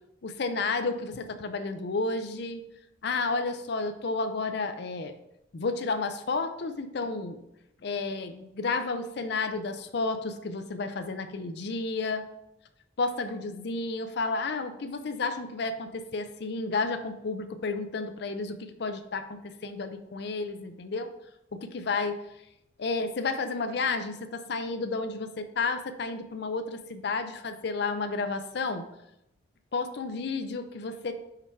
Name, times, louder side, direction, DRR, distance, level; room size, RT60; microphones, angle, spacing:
voice 1, 0.2-2.7 3.0-5.1 5.5-7.4 7.8-12.2 13.0-21.1 21.5-22.2 22.8-28.8 29.7-31.1, left 3 dB, 55° left, 8 dB, 0.5 m, -31 dB
5.7 x 4.5 x 4.5 m, 0.85 s
head